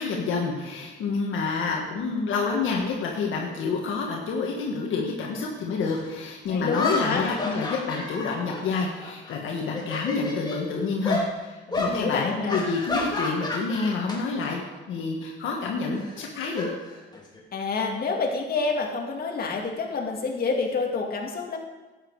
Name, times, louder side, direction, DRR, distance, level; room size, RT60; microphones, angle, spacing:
voice 1, 0.0-14.6 14.9-16.7, left 4 dB, 80° left, -1 dB, 1.6 m, -28 dB
sound 1, 5.9-6.0 6.7-9.3 9.7-10.6 11.0-11.3 11.7-12.0 12.5-14.2 14.5-14.8 16.0-17.4, left 2 dB, 20° left, 2.9 m, -31 dB
voice 2, 6.5-7.3 11.7-12.6 17.5-21.6, left 4 dB, 50° left, 0 dB, 2.3 m, -28 dB
11.5 x 8.9 x 4.8 m, 1.2 s
cardioid pair, 90°, 20 cm